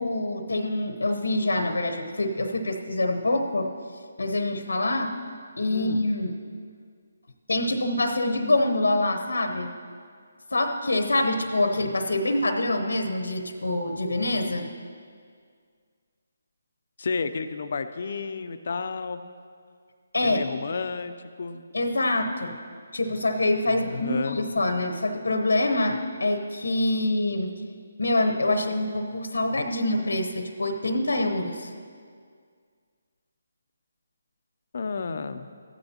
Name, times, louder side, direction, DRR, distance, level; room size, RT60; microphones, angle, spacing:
voice 1, 0.0-3.7 4.2-5.1 5.6-6.3 7.5-9.7 10.5-14.7 20.1-20.4 21.7-22.6 22.9-27.5 28.0-31.7, left 2 dB, 85° left, 7 dB, 0.9 m, -25 dB
voice 2, 5.7-6.0 17.0-19.2 20.2-21.1 21.4-21.6 23.8-24.4 34.7-35.5, left 4 dB, 60° left, 10 dB, 0.5 m, -31 dB
14.5 x 11.0 x 2.9 m, 2.1 s
figure-of-eight pair, 155°, 0 cm